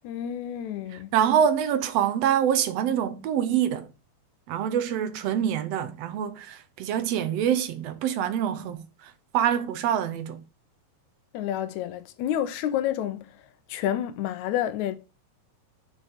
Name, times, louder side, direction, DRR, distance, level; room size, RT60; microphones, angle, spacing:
voice 1, 0.0-1.1 11.3-13.3 13.7-15.0, left 11 dB, 75° left, 2.1 m, -29 dB
voice 2, 0.9-3.9 4.5-10.4, right 9 dB, 75° right, 1.6 m, -25 dB
6.3 x 6.2 x 3.5 m
omnidirectional pair, 3.4 m